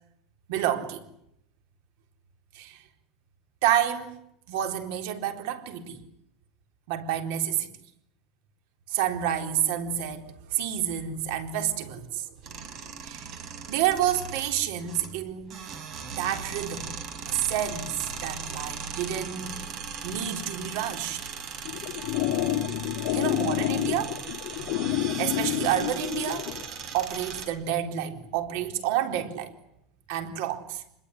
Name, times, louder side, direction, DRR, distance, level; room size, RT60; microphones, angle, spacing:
voice 1, 0.5-1.0 2.5-2.8 3.6-4.2 4.5-6.0 6.9-7.7 8.9-12.3 13.0-13.3 13.7-15.6 16.1-16.9 17.3-19.7 20.0-21.2 23.1-24.2 24.8-26.5 26.9-29.5 30.1-30.8, right 10 dB, 75° right, 4.1 m, -29 dB
sound 1, 12.4-27.5, right 6 dB, 40° right, 5.3 m, -38 dB
sound 2, 21.7-26.6, left 12 dB, 60° left, 2.3 m, -29 dB
26.0 x 21.5 x 9.9 m
cardioid pair, 155°, 0 cm